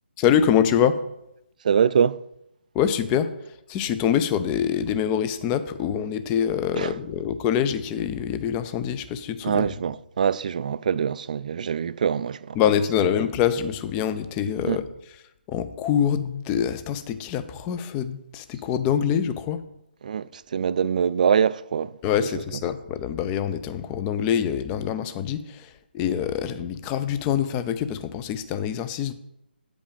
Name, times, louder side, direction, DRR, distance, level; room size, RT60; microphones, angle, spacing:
voice 1, 0.2-1.0 2.7-9.7 12.6-14.9 15.5-19.6 22.0-29.1, left 9 dB, 15° left, 0.5 m, -25 dB
voice 2, 1.6-2.2 6.7-6.9 9.4-12.6 14.6-14.8 20.0-22.0, right 7 dB, 45° right, 0.3 m, -24 dB
9.0 x 5.1 x 5.2 m
figure-of-eight pair, 150°, 6 cm